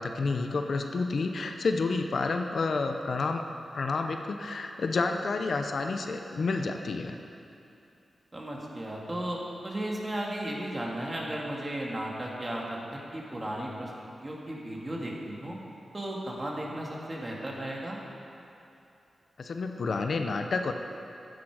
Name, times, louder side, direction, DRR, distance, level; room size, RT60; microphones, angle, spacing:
voice 1, 0.0-3.4 3.7-7.2 19.4-20.7, left 3 dB, 60° left, 5 dB, 0.7 m, -29 dB
voice 2, 8.3-13.9 14.2-15.6 15.9-18.0, right 1 dB, 25° right, -3 dB, 2.1 m, -35 dB
15.0 x 10.5 x 4.9 m, 2.7 s
wide cardioid pair, 130°, 0 cm